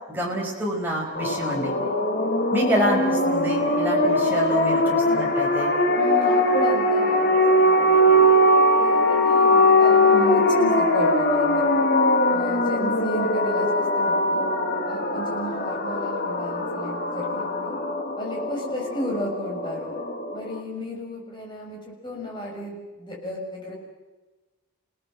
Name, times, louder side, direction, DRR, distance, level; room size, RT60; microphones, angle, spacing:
voice 1, 0.1-1.7 2.5-5.7, right 1 dB, 10° right, -2 dB, 5.5 m, -27 dB
sound 1, 1.2-20.6, left 1 dB, 45° left, 2.3 m, -21 dB
voice 2, 5.9-8.2 8.7-11.6 12.3-14.4 14.8-17.8 18.2-19.9 20.3-23.7, equal, 20° left, -1 dB, 6.4 m, -34 dB
29.5 x 18.0 x 7.7 m, 1.2 s
head